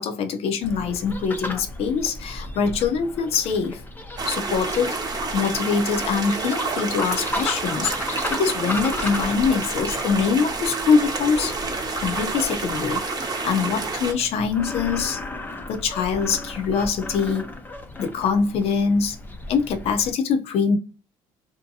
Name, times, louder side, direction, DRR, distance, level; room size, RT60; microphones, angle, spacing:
voice 1, 0.0-3.8 4.3-4.9 5.3-11.5 12.0-13.0 13.4-15.2 15.7-17.5 18.0-19.2 19.5-20.8, left 5 dB, 60° left, 0.7 m, -23 dB
sound 1, 0.6-20.1, left 2 dB, 15° left, 0.6 m, -35 dB
sound 2, 4.2-14.1, right 3 dB, 35° right, 0.8 m, -29 dB
2.7 x 2.1 x 2.6 m
supercardioid pair, 70°, 12 cm